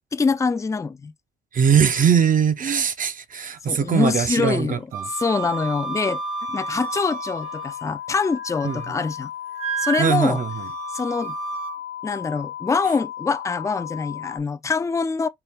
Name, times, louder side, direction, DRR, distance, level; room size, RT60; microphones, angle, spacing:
voice 1, 0.1-1.1 3.7-6.2 6.5-9.3 9.8-10.4 10.9-11.3 12.0-15.3, left 4 dB, 15° left, 0.4 m, -24 dB
voice 2, 1.5-5.1 8.6-8.8 10.0-10.7, right 7 dB, 45° right, 0.6 m, -21 dB
Wind instrument woodwind instrument, 4.9-7.9 8.3-9.0 9.6-11.8, right 7 dB, 85° right, 1.3 m, -32 dB
sound 1, 5.4-14.4, left 11 dB, 55° left, 0.9 m, -35 dB
4.5 x 2.2 x 3.4 m
cardioid pair, 90°, 20 cm